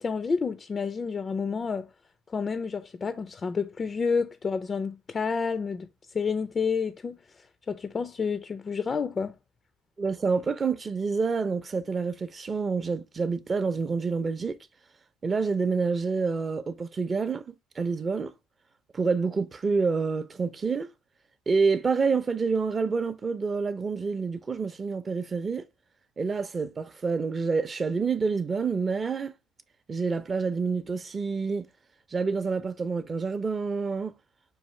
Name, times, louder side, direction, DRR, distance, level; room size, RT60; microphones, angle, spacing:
voice 1, 0.0-1.9 2.3-5.9 6.1-7.2 7.7-9.3, left 5 dB, 30° left, 0.3 m, -29 dB
voice 2, 10.0-14.6 15.2-18.3 18.9-20.9 21.5-25.6 26.2-29.3 29.9-31.7 32.1-34.1, right 4 dB, 30° right, 0.5 m, -28 dB
4.7 x 2.6 x 3.0 m
supercardioid pair, 80°, 0 cm